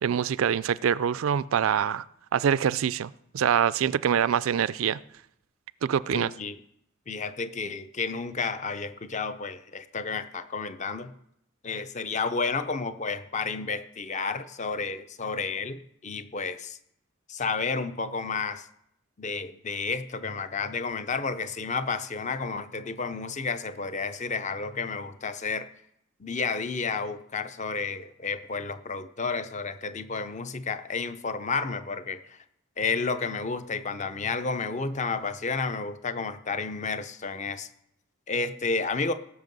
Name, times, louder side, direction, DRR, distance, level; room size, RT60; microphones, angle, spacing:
voice 1, 0.0-2.0 2.3-5.0 5.8-6.3, right 8 dB, 85° right, 0.4 m, -25 dB
voice 2, 6.1-6.6 7.1-11.1 11.6-16.8 17.3-18.7 19.2-25.7 26.2-32.4 32.8-37.7 38.3-39.1, left 4 dB, 35° left, 0.6 m, -31 dB
18.5 x 6.4 x 5.4 m
head